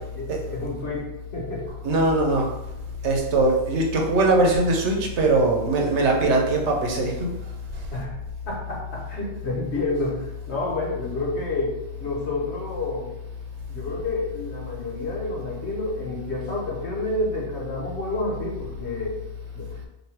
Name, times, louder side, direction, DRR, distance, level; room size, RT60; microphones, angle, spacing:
voice 1, 0.0-1.6 7.9-8.2 8.5-13.1 13.7-19.2 19.5-19.7, left 2 dB, 75° left, -2 dB, 1.3 m, -29 dB
voice 2, 1.8-2.5 3.0-7.3, right 2 dB, 85° right, 1 dB, 1.1 m, -21 dB
3.2 x 2.8 x 4.4 m, 0.93 s
omnidirectional pair, 1.1 m